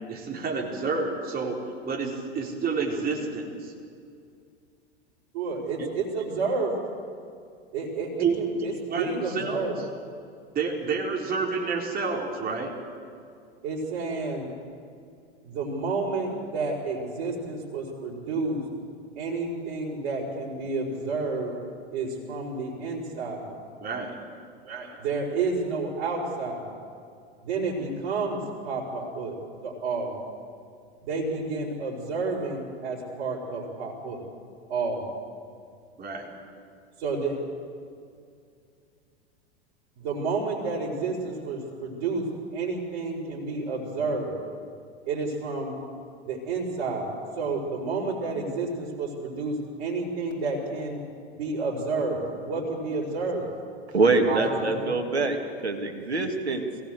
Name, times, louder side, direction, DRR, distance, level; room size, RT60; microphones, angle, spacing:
voice 1, 0.1-3.7 5.8-5.9 8.2-8.4 8.9-9.7 10.5-12.7 23.8-24.2 36.0-36.3, right 4 dB, 30° right, 0 dB, 4.2 m, -29 dB
voice 2, 5.3-6.7 7.7-9.8 13.6-14.5 15.4-18.6 19.2-21.5 21.9-23.5 24.7-26.7 27.4-29.3 29.6-30.2 31.0-34.2 34.7-35.1 37.0-37.4 40.0-42.3 42.5-44.3 45.1-45.7 46.3-47.1 47.4-51.0 51.4-53.5 54.2-54.9, right 3 dB, 55° right, -6 dB, 5.2 m, -30 dB
voice 3, 53.9-55.4 55.6-56.6, right 3 dB, 85° right, 5 dB, 2.4 m, -24 dB
22.0 x 17.5 x 7.9 m, 2.3 s
figure-of-eight pair, 90°, 32 cm